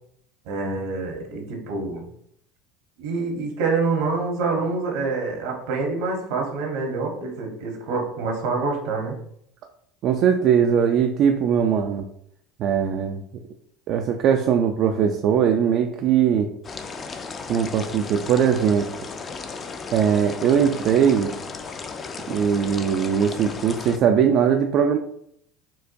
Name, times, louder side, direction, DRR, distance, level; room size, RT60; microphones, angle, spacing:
voice 1, 0.4-2.0 3.0-9.2, right 4 dB, 75° right, 1 dB, 1.0 m, -26 dB
voice 2, 10.0-12.0 12.6-13.2 13.9-16.5 17.5-18.9 19.9-21.3 22.3-25.0, right 8 dB, 55° right, 4 dB, 0.3 m, -20 dB
sound 1, 16.6-24.0, left 4 dB, 35° left, 0.4 m, -35 dB
4.5 x 2.2 x 2.6 m, 0.70 s
supercardioid pair, 90°, 0 cm